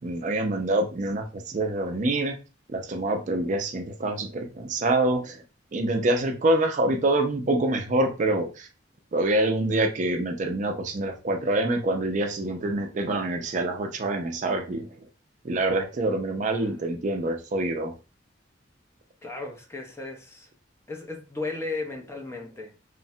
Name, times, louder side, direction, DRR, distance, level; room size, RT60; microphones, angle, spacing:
voice 1, 0.0-2.4 2.7-5.4 5.7-8.7 9.1-14.9 15.4-17.9, right 2 dB, 40° right, 0.4 m, -26 dB
voice 2, 19.2-20.5 20.9-22.8, left 3 dB, 15° left, 0.5 m, -35 dB
3.1 x 2.1 x 2.7 m
head